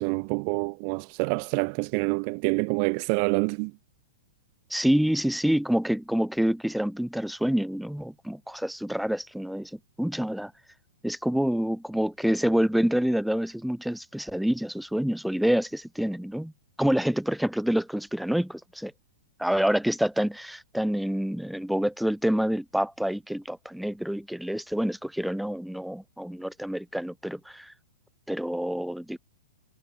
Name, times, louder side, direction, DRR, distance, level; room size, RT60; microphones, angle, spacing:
voice 1, 0.0-3.7, right 40 dB or more, 40° right, 0.6 m, -27 dB
voice 2, 4.7-10.5 11.0-16.5 16.8-18.9 19.4-27.7 28.3-29.2, equal, ahead, 2.5 m, -27 dB
hypercardioid pair, 140°, 0 cm